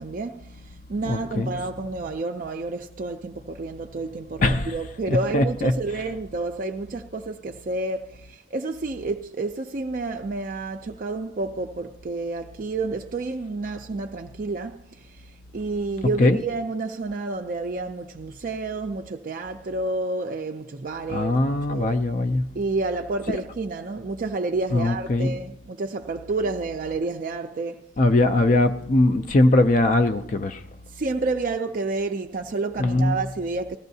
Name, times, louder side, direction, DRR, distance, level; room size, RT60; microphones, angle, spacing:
voice 1, 0.0-21.9 22.5-27.8 30.9-33.8, right 3 dB, 45° right, 0.4 m, -30 dB
voice 2, 1.0-1.5 4.4-4.7 5.1-5.7 16.2-16.4 21.1-22.5 24.7-25.4 28.0-30.6 32.8-33.2, left 2 dB, 40° left, 0.4 m, -21 dB
19.0 x 14.0 x 2.7 m
head